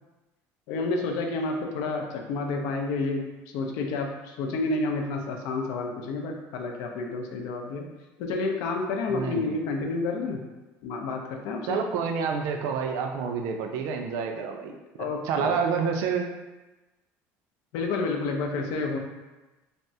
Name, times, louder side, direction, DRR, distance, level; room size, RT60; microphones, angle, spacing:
voice 1, 0.7-7.9 8.2-10.4 10.8-11.8 15.0-15.6 17.7-19.0, left 3 dB, 75° left, 2 dB, 0.4 m, -30 dB
voice 2, 9.1-9.6 11.7-14.8 15.2-16.3, right 6 dB, 70° right, 4 dB, 0.4 m, -28 dB
3.4 x 2.0 x 2.6 m, 1.1 s
cardioid pair, 160°, 6 cm